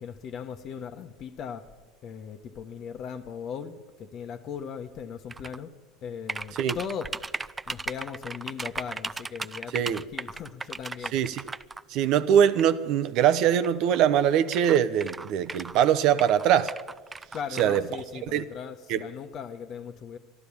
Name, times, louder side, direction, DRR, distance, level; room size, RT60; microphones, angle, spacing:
voice 1, 0.0-1.7 2.0-5.7 6.0-7.1 7.7-11.2 17.3-20.2, left 7 dB, 50° left, 1.2 m, -38 dB
sound 1, 5.3-5.6 6.3-11.8 12.6-12.7 13.6-13.7 13.9-14.0 14.5-15.8 16.2-17.8, right 3 dB, 20° right, 0.4 m, -36 dB
voice 2, 11.1-11.4 11.9-16.7 17.6-17.8 18.3-18.4 18.9-19.0, right 9 dB, 60° right, 0.7 m, -22 dB
12.0 x 12.0 x 8.6 m
hypercardioid pair, 85°, 0 cm